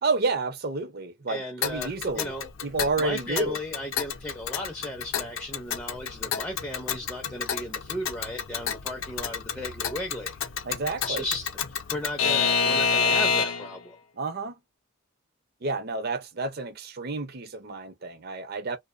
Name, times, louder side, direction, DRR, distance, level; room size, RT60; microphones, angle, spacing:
voice 1, 0.0-2.3 2.6-3.6 10.6-11.2 14.2-14.6 15.6-18.8, right 3 dB, 45° right, 0.5 m, -30 dB
voice 2, 1.3-2.5 3.0-10.4 11.0-14.0, left 1 dB, 10° left, 0.4 m, -36 dB
Alarm / Clock, 1.6-13.8, left 6 dB, 70° left, 0.5 m, -29 dB
2.7 x 2.1 x 2.4 m
head